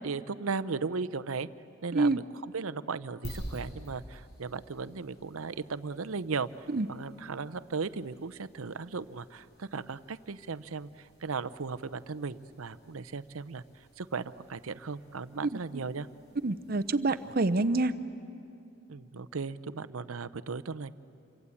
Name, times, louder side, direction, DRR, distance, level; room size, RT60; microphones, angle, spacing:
voice 1, 0.0-1.5 1.8-6.5 6.9-13.6 14.0-16.1 18.9-20.9, right 4 dB, 85° right, 15 dB, 0.7 m, -36 dB
sound 1, 3.2-18.0, equal, 50° left, 6.4 m, -51 dB
voice 2, 15.5-15.8 16.4-17.9, right 2 dB, 45° right, 12 dB, 0.7 m, -27 dB
27.5 x 24.0 x 8.4 m, 2.6 s
head